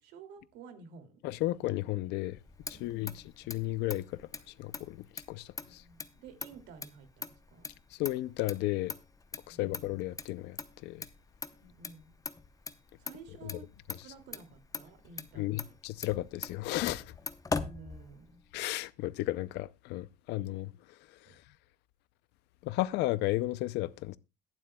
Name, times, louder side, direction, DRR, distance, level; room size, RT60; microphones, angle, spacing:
voice 1, 0.0-1.2 2.7-3.2 5.6-7.7 9.5-9.7 11.5-12.1 13.0-13.7 14.0-15.8 17.5-18.4 21.2-21.4, right 5 dB, 90° right, 2.5 m, -52 dB
voice 2, 1.2-2.4 2.7-4.1 4.6-5.8 8.0-8.9 9.5-10.6 10.8-11.0 15.4-17.1 18.5-20.7 22.6-24.2, left 17 dB, 90° left, 0.5 m, -33 dB
Motor vehicle (road), 2.3-18.5, left 4 dB, 20° left, 0.8 m, -43 dB
21.5 x 7.6 x 2.2 m
cardioid pair, 110°, 17 cm